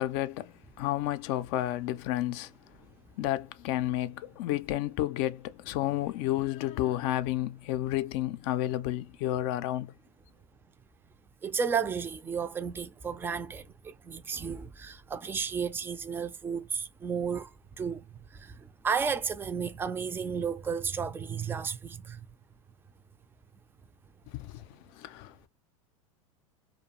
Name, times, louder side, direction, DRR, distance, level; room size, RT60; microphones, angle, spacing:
voice 1, 0.0-2.5 3.2-9.9 24.3-24.6 25.0-25.5, left 14 dB, 55° left, 0.4 m, -31 dB
voice 2, 11.4-17.5 17.8-18.0 18.3-18.5 18.8-22.2, right 6 dB, 10° right, 0.4 m, -33 dB
2.3 x 2.2 x 2.8 m
hypercardioid pair, 100°, 17 cm